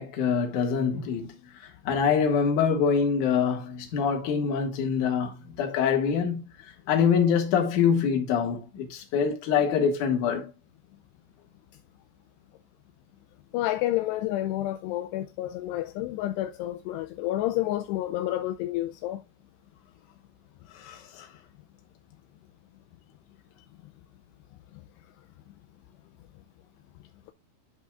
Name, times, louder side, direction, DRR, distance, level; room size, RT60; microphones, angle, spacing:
voice 1, 0.0-1.3 1.9-6.4 6.9-10.5 20.8-21.3, left 6 dB, 55° left, 2.7 m, -25 dB
voice 2, 13.5-19.2, left 14 dB, 85° left, 2.6 m, -29 dB
11.0 x 5.5 x 2.3 m
omnidirectional pair, 4.9 m